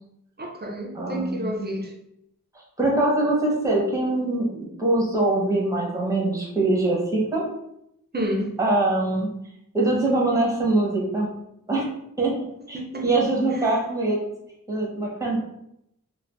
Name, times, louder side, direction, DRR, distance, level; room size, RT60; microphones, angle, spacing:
voice 1, 0.4-1.9 8.1-8.6 12.7-13.2 13.6-13.7, equal, 30° right, 1 dB, 0.6 m, -30 dB
voice 2, 0.9-1.5 2.5-7.5 8.6-9.3 9.7-11.4 11.7-11.9 12.2-12.3 12.7-14.2 14.7-15.4, right 2 dB, 10° right, -3 dB, 0.9 m, -23 dB
2.5 x 2.3 x 3.4 m, 0.78 s
wide cardioid pair, 95°, 33 cm